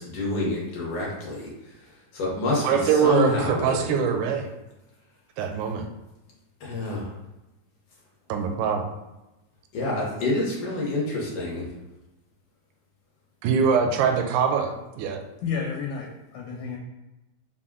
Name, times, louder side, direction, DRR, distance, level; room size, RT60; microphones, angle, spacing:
voice 1, 0.0-1.5 2.1-3.8 6.6-7.1 9.7-11.7, left 2 dB, 65° left, -4 dB, 1.5 m, -27 dB
voice 2, 2.6-4.5 5.4-5.9 8.3-8.9 13.4-14.7 15.0-15.2, right 7 dB, 80° right, 4 dB, 1.9 m, -23 dB
voice 3, 15.4-16.8, left 6 dB, 80° left, -2 dB, 2.0 m, -31 dB
5.2 x 2.2 x 3.6 m, 0.99 s
omnidirectional pair, 3.6 m